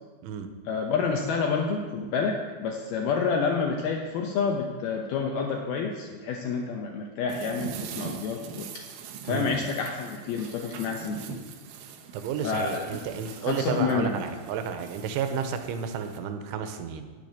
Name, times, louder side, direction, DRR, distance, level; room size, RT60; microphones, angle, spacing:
voice 1, 0.7-8.7 9.2-11.4 12.4-13.1 13.4-14.2, left 5 dB, 80° left, 2 dB, 2.2 m, -29 dB
sound 1, 7.3-16.2, right 6 dB, 70° right, 2.4 m, -42 dB
voice 2, 12.1-17.1, right 7 dB, 85° right, 8 dB, 3.3 m, -32 dB
10.5 x 7.5 x 9.5 m, 1.5 s
omnidirectional pair, 5.5 m